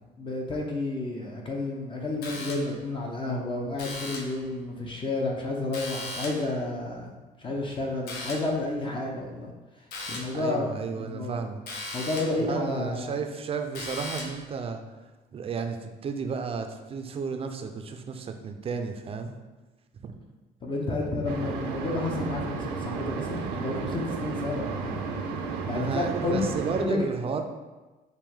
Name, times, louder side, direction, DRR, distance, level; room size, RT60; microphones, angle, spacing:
voice 1, 0.2-7.1 7.4-9.5 10.0-11.4 11.9-13.1 20.6-25.1 25.7-26.5 26.8-27.0, left 2 dB, 30° left, -1 dB, 0.7 m, -31 dB
sound 1, 2.2-2.9 3.8-4.4 5.7-6.6 8.1-8.6 9.9-10.4 11.7-12.5 13.7-14.5, left 2 dB, 70° left, 0.9 m, -37 dB
voice 2, 10.3-11.8 12.4-14.8 15.3-19.3 20.0-20.1 25.7-27.4, right 5 dB, 35° right, 5 dB, 0.5 m, -33 dB
sound 2, 21.2-26.9, right 5 dB, 85° right, 0.6 m, -33 dB
5.0 x 2.6 x 3.6 m, 1.2 s
cardioid pair, 110°, 17 cm